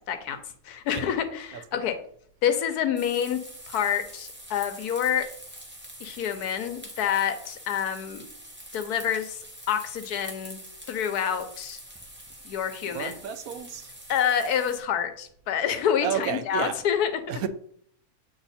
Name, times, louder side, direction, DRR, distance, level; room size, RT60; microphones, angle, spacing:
voice 1, 0.7-1.9 2.4-3.4 3.7-5.3 6.0-8.2 8.7-9.4 9.7-10.6 10.9-11.8 12.4-13.2 14.1-17.1, left 9 dB, 85° left, 1.3 m, -27 dB
sound 1, 3.0-14.8, right 1 dB, 10° right, 1.1 m, -45 dB
voice 2, 12.9-13.9 16.0-16.8 17.3-17.5, right 8 dB, 75° right, 1.0 m, -31 dB
8.0 x 3.3 x 4.1 m
omnidirectional pair, 1.6 m